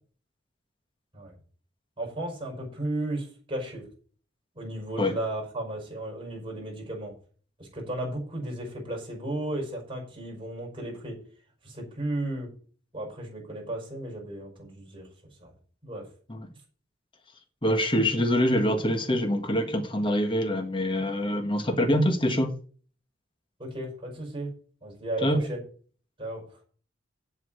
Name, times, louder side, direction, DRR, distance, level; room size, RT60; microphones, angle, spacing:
voice 1, 2.0-3.9 4.5-7.1 7.6-11.2 11.6-12.5 12.9-15.1 15.4-15.5 15.8-16.1 23.6-24.5 24.8-25.6 26.2-26.4, right 1 dB, 25° right, -1 dB, 5.6 m, -34 dB
voice 2, 17.6-22.5 25.2-25.4, equal, 25° left, 5 dB, 1.5 m, -25 dB
8.1 x 7.6 x 7.8 m, 0.43 s
head